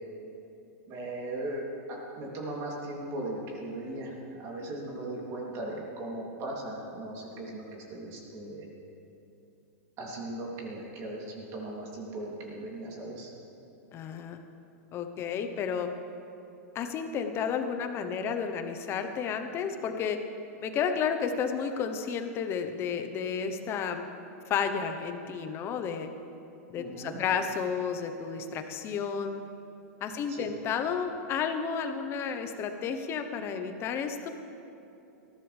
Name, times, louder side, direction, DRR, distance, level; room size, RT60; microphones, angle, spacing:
voice 1, 0.9-1.6 1.9-8.7 10.0-13.3 26.7-27.2 30.3-30.5, right 1 dB, 35° right, -3 dB, 3.2 m, -38 dB
voice 2, 13.9-14.4 14.9-15.9 16.7-20.2 20.6-24.0 24.5-26.1 26.7-29.4 30.0-34.3, left 6 dB, 30° left, 7 dB, 1.1 m, -32 dB
19.5 x 15.0 x 3.5 m, 2.8 s
hypercardioid pair, 135°, 8 cm